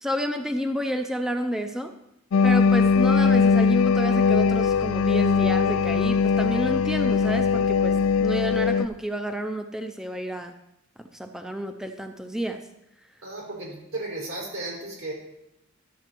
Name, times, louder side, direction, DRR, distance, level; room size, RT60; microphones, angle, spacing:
voice 1, 0.0-1.9 2.4-10.5 11.1-12.6, equal, 5° right, 6 dB, 0.5 m, -30 dB
sound 1, 2.3-8.9, left 5 dB, 90° left, 0.4 m, -20 dB
sound 2, 2.4-8.7, right 1 dB, 50° right, 2.2 m, -43 dB
voice 2, 13.2-15.1, right 2 dB, 75° right, -3 dB, 4.3 m, -34 dB
12.0 x 7.0 x 4.5 m, 0.85 s
head